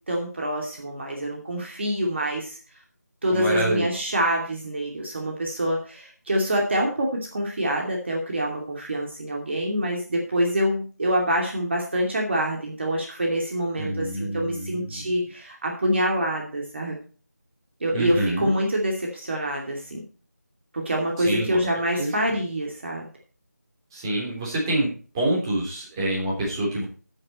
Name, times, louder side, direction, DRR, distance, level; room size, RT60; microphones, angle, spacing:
voice 1, 0.1-2.6 3.2-17.0 17.8-20.0 20.7-23.1, equal, 40° right, 0 dB, 2.7 m, -26 dB
voice 2, 3.3-3.9 13.8-15.1 17.9-18.5 21.2-21.6 21.9-22.4 23.9-24.9 25.1-26.8, right 1 dB, 15° right, -4 dB, 3.5 m, -27 dB
9.9 x 9.6 x 4.3 m, 0.38 s
figure-of-eight pair, 170°, 9 cm